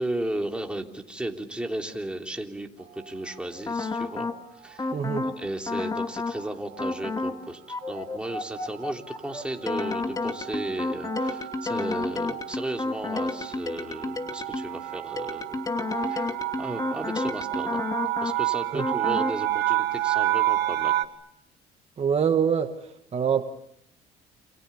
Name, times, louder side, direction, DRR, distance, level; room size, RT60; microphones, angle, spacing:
voice 1, 0.0-4.3 4.6-4.9 5.2-15.6 16.1-17.8 18.2-20.9, right 1 dB, 5° right, 2 dB, 3.5 m, -34 dB
sound 1, 2.9-3.4 4.1-4.5 4.8-5.0 5.3-21.0, right 16 dB, 75° right, 2.1 m, -31 dB
sound 2, 3.7-4.4 4.8-5.4 5.7-6.4 6.8-7.4 7.7-14.8 15.2-18.4 18.8-19.4, left 3 dB, 20° left, 2.8 m, -31 dB
voice 2, 4.9-5.3 18.7-18.9 22.0-22.7 23.1-23.4, right 7 dB, 40° right, 6 dB, 1.7 m, -24 dB
29.5 x 27.0 x 7.2 m, 0.76 s
cardioid pair, 110°, 17 cm